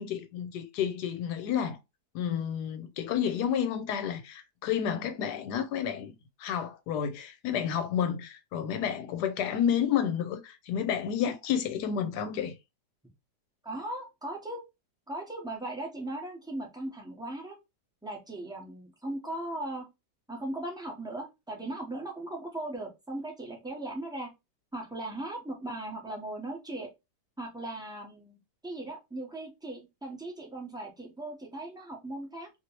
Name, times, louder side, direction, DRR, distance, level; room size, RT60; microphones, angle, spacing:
voice 1, 0.0-1.8 2.1-6.1 6.4-12.5, left 8 dB, 80° left, 1.2 m, -30 dB
voice 2, 13.6-14.6 15.1-17.6 18.0-19.9 20.3-24.3 24.7-26.9 27.4-32.5, right 1 dB, 5° right, 0.5 m, -38 dB
2.9 x 2.9 x 2.9 m
omnidirectional pair, 1.8 m